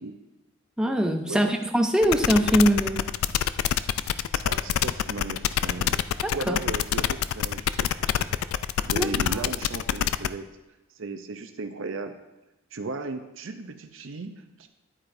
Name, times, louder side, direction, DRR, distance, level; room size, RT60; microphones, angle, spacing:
voice 1, 0.8-3.0 6.2-6.6 9.0-9.1, equal, 5° right, 4 dB, 0.5 m, -22 dB
sound 1, 2.0-10.3, left 10 dB, 90° left, 0.3 m, -26 dB
voice 2, 4.3-6.0 6.3-8.3 8.9-10.4 11.0-12.1 12.7-14.7, right 3 dB, 70° right, 7 dB, 0.6 m, -36 dB
10.0 x 8.7 x 2.6 m, 1.0 s
head